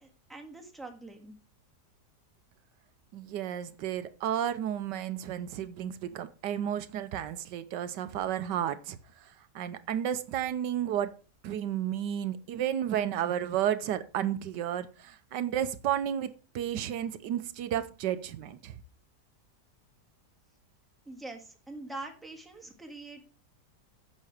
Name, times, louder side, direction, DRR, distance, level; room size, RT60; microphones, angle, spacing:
voice 1, 0.0-1.4 21.1-23.2, right 2 dB, ahead, 1.7 m, -44 dB
voice 2, 3.1-9.0 9.5-11.1 11.4-18.7, right 10 dB, 80° right, 1.3 m, -32 dB
9.9 x 6.8 x 4.9 m
omnidirectional pair, 1.8 m